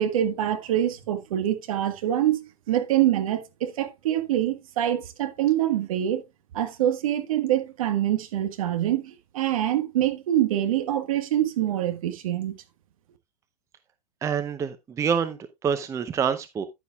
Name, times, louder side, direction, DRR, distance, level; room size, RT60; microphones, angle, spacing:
voice 1, 0.0-6.2 6.5-12.5, right 12 dB, 55° right, 1.5 m, -25 dB
voice 2, 14.2-16.7, right 7 dB, 15° right, 0.6 m, -27 dB
10.0 x 9.3 x 2.3 m
hypercardioid pair, 110°, 21 cm